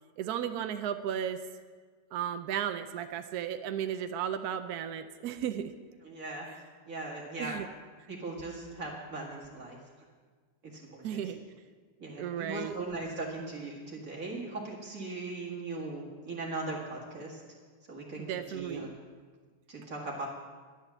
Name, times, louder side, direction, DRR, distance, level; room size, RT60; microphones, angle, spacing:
voice 1, 0.2-1.4 2.1-5.7 7.4-7.7 11.0-11.4 12.2-12.8 18.2-18.9, right 9 dB, 75° right, 8 dB, 1.1 m, -34 dB
voice 2, 6.0-6.5 6.9-7.6 8.1-9.8 10.7-11.2 12.0-17.4 17.9-18.9 19.7-20.3, right 2 dB, 55° right, -4 dB, 2.4 m, -39 dB
11.5 x 10.5 x 6.9 m, 1.5 s
omnidirectional pair, 1.8 m